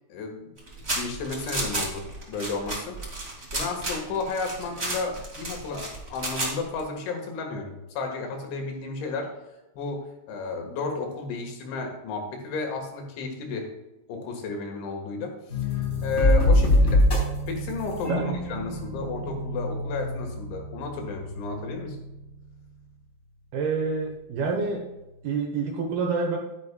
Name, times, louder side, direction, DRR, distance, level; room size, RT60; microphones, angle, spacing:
voice 1, 0.1-0.6 0.9-9.3 9.8-13.7 14.1-17.1 17.5-22.0, left 4 dB, 80° left, 2 dB, 3.9 m, -33 dB
sound 1, 0.6-6.8, right 2 dB, 30° right, 1.1 m, -32 dB
sound 2, 15.5-22.3, left 1 dB, 20° left, 2.8 m, -25 dB
voice 2, 18.1-18.4 23.5-24.9 25.2-26.4, right 4 dB, 70° right, 1 dB, 2.6 m, -27 dB
11.0 x 10.5 x 2.3 m, 0.99 s
omnidirectional pair, 5.4 m